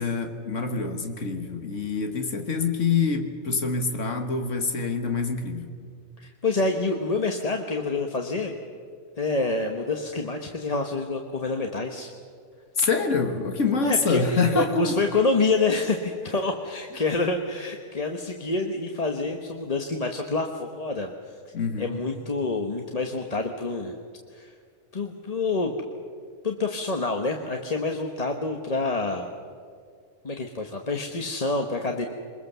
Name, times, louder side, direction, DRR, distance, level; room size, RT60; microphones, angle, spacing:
voice 1, 0.0-5.7 12.8-15.0 21.5-22.0, left 4 dB, 75° left, 5 dB, 1.8 m, -26 dB
voice 2, 6.2-8.6 9.2-12.1 13.8-21.1 21.8-24.0 24.3-24.5 24.9-25.7 26.4-29.3 30.2-32.1, left 3 dB, 30° left, 3 dB, 1.2 m, -27 dB
24.5 x 21.5 x 6.9 m, 2.2 s
omnidirectional pair, 1.3 m